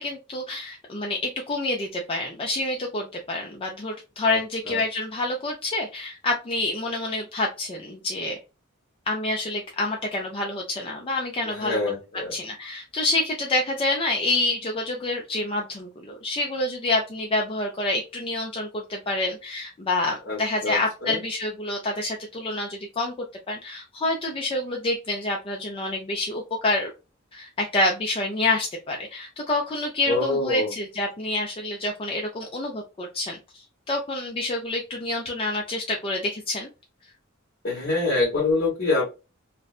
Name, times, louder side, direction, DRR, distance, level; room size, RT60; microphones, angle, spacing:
voice 1, 0.0-8.4 9.1-11.8 12.3-23.1 23.5-26.9 27.3-36.7, left 2 dB, 25° left, 0 dB, 0.4 m, -27 dB
voice 2, 11.4-12.3 20.3-21.2 30.1-30.7 37.6-39.0, left 3 dB, 55° left, -5 dB, 1.2 m, -25 dB
2.6 x 2.1 x 2.4 m, 0.29 s
head